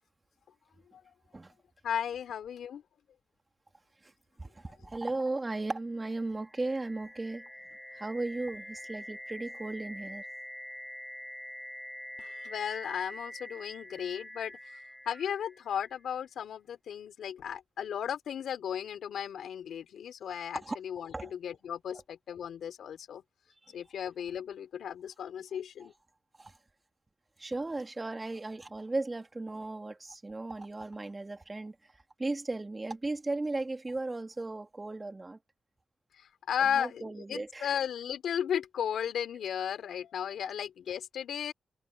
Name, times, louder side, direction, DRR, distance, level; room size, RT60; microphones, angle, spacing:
voice 1, 1.8-2.8 12.2-14.6 15.1-23.2 23.7-25.9 36.2-41.5, left 9 dB, 90° left, 4.3 m, -35 dB
voice 2, 4.4-7.5 8.0-10.2 20.6-20.8 21.1-21.3 26.4-26.5 27.4-31.8 32.2-35.4 36.7-37.7, right 2 dB, 30° right, 3.6 m, -36 dB
sound 1, 6.2-16.0, left 1 dB, 5° left, 5.3 m, -45 dB
cardioid pair, 55°, 0 cm